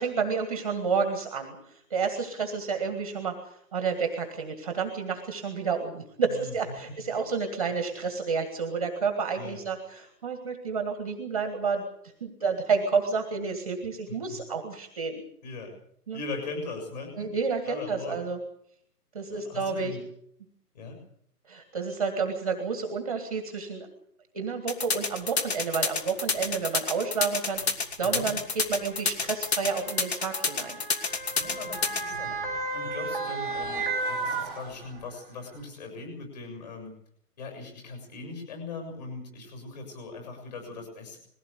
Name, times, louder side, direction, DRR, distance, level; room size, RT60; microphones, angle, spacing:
voice 1, 0.0-3.4 3.7-11.8 12.2-15.2 16.1-16.2 17.2-18.4 19.1-20.0 21.5-23.9 24.3-30.8, right 5 dB, 20° right, 5 dB, 1.7 m, -30 dB
voice 2, 6.2-6.6 7.0-7.2 9.4-9.6 14.1-14.4 15.4-15.7 16.1-17.3 17.6-18.2 19.3-20.0 20.7-21.0 28.0-28.3 31.3-32.4 32.7-36.9 37.4-41.2, left 3 dB, 25° left, 4 dB, 6.9 m, -40 dB
sound 1, 24.7-32.0, left 4 dB, 40° left, 2.7 m, -28 dB
Motor vehicle (road) / Siren, 25.2-25.3 26.3-26.5 27.6-35.2 35.6-35.7, right 3 dB, ahead, 1.6 m, -34 dB
21.0 x 16.5 x 8.3 m, 0.68 s
hypercardioid pair, 170°, 48 cm